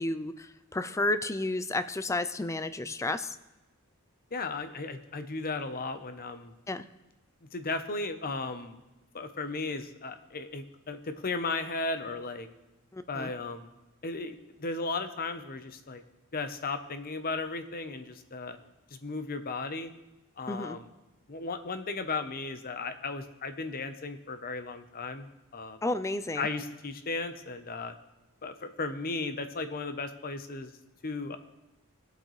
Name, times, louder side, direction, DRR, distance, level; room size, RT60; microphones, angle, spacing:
voice 1, 0.0-3.4 6.7-6.8 12.9-13.3 20.5-20.8 25.8-26.5, left 2 dB, 15° left, 11 dB, 0.4 m, -32 dB
voice 2, 4.3-6.5 7.5-8.8 9.1-12.5 13.1-13.7 14.0-16.0 16.3-18.6 18.9-19.9 20.4-20.9 21.3-25.8 26.4-27.9 28.4-30.7 31.0-31.4, left 3 dB, 40° left, 9 dB, 0.8 m, -35 dB
19.5 x 8.0 x 3.2 m, 1.0 s
head